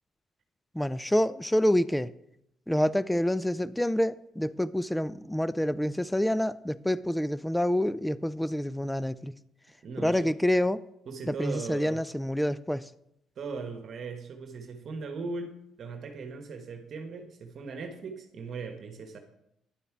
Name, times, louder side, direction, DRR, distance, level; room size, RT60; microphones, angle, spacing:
voice 1, 0.7-2.1 2.7-9.3 10.0-10.8 11.3-12.9, left 1 dB, 5° left, 0.4 m, -27 dB
voice 2, 9.8-10.3 11.1-12.0 13.4-19.2, right 4 dB, 55° right, 1.2 m, -39 dB
10.0 x 7.0 x 4.7 m
cardioid pair, 80°, 0 cm